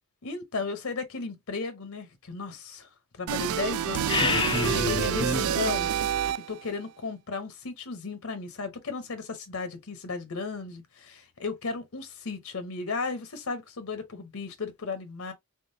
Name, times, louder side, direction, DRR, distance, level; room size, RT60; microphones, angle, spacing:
voice 1, 0.2-2.9 3.2-5.9 6.5-15.3, left 4 dB, 70° left, 0.8 m, -35 dB
sound 1, 3.3-6.7, right 9 dB, 70° right, 0.3 m, -28 dB
sound 2, 3.9-5.5, left 4 dB, 20° left, 0.4 m, -28 dB
3.7 x 3.4 x 2.7 m
head